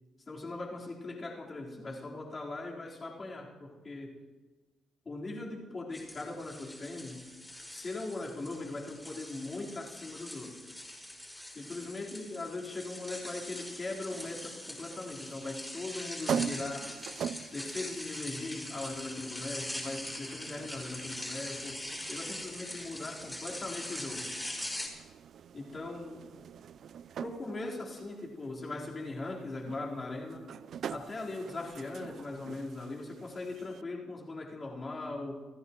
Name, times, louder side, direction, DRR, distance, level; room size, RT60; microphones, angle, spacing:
voice 1, 0.2-4.2 5.0-7.2 7.7-10.8 11.5-16.9 17.5-24.3 25.5-26.3 27.2-30.5 30.9-35.3, left 2 dB, 35° left, -4 dB, 4.4 m, -40 dB
sound 1, 5.9-24.9, left 1 dB, 10° left, 5.5 m, -42 dB
sound 2, 14.1-33.8, right 8 dB, 65° right, 0.5 m, -44 dB
29.5 x 14.0 x 3.2 m, 1.3 s
cardioid pair, 90°, 0 cm